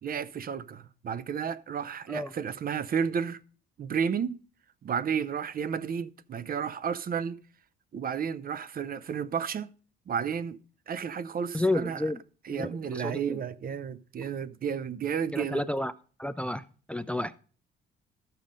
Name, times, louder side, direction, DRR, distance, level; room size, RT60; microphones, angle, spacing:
voice 1, 0.0-3.4 3.8-4.4 4.8-7.4 7.9-9.7 10.1-10.6 10.9-12.1 12.4-15.6, right 7 dB, 45° right, 0.6 m, -32 dB
voice 2, 11.5-12.2 12.5-13.4 15.3-15.9 16.2-17.3, left 1 dB, 5° left, 0.4 m, -31 dB
13.5 x 5.6 x 5.1 m
cardioid pair, 90°, 20 cm